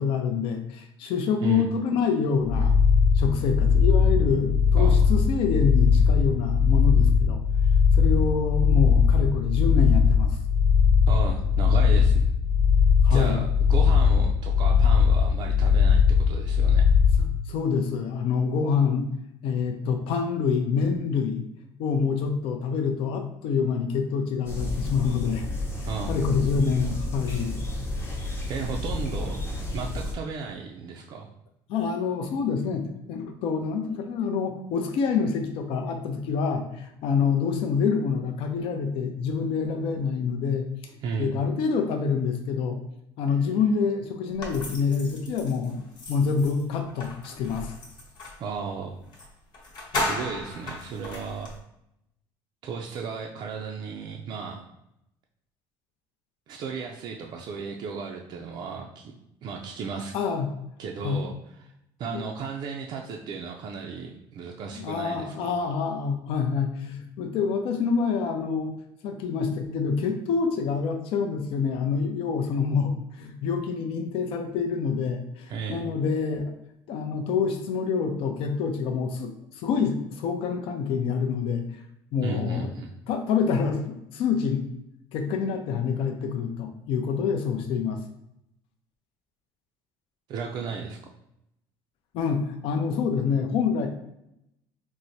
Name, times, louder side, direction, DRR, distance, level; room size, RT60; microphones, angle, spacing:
voice 1, 0.0-2.8 3.1-7.4 7.9-10.4 13.0-13.4 17.5-19.1 19.4-21.4 21.8-25.4 25.8-27.6 31.7-40.9 41.2-42.8 43.2-47.8 60.1-60.5 61.0-61.2 62.1-62.2 64.7-68.7 69.0-76.5 76.9-81.6 82.1-82.7 83.1-84.7 85.1-88.0 92.1-93.9, left 6 dB, 65° left, 4 dB, 0.5 m, -26 dB
sound 1, 2.5-17.2, left 6 dB, 90° left, 1.1 m, -20 dB
voice 2, 4.8-5.1 11.1-12.3 13.1-16.8 25.9-26.1 28.5-29.4 29.7-31.3 41.0-41.3 48.4-49.0 50.0-51.5 52.6-54.6 56.5-59.1 59.4-60.1 60.8-61.3 61.6-61.7 62.0-65.7 75.5-75.8 82.2-82.9 90.3-91.0, right 5 dB, 45° right, 0 dB, 0.4 m, -34 dB
sound 2, 24.4-30.1, left 1 dB, 25° left, 0.7 m, -31 dB
sound 3, 44.4-48.4 49.1-49.3 49.5-51.6, left 1 dB, 45° left, 1.0 m, -35 dB
4.5 x 2.0 x 2.7 m, 0.81 s
cardioid pair, 125°, 10 cm